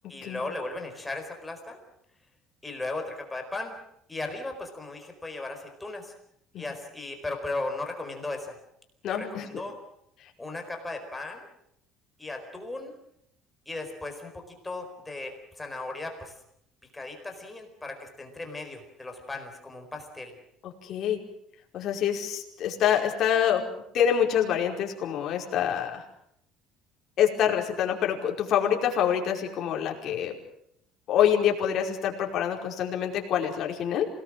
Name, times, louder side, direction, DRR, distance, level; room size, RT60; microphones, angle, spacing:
voice 1, 0.1-1.8 2.6-3.7 4.1-6.1 6.6-8.6 9.1-9.8 10.4-11.5 12.2-13.0 13.7-16.3 16.9-20.3, left 2 dB, 10° left, 3 dB, 4.5 m, -36 dB
voice 2, 9.0-9.5 20.6-21.2 21.7-23.6 23.9-26.0 27.2-30.3 31.1-34.1, left 9 dB, 45° left, 1 dB, 5.1 m, -26 dB
27.0 x 19.5 x 7.6 m, 0.74 s
cardioid pair, 160°, 0 cm